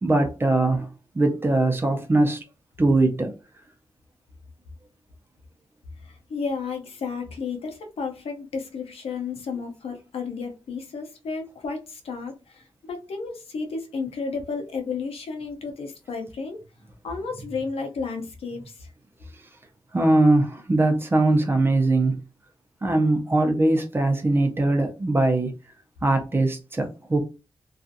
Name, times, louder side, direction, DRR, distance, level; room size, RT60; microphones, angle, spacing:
voice 1, 0.0-0.9 1.2-2.4 2.8-3.3 19.9-22.2 22.8-25.5 26.0-27.2, right 2 dB, 25° right, 0.6 m, -21 dB
voice 2, 6.0-16.6 17.0-18.7, left 4 dB, 80° left, 0.6 m, -32 dB
2.6 x 2.4 x 2.5 m
wide cardioid pair, 135°, 10 cm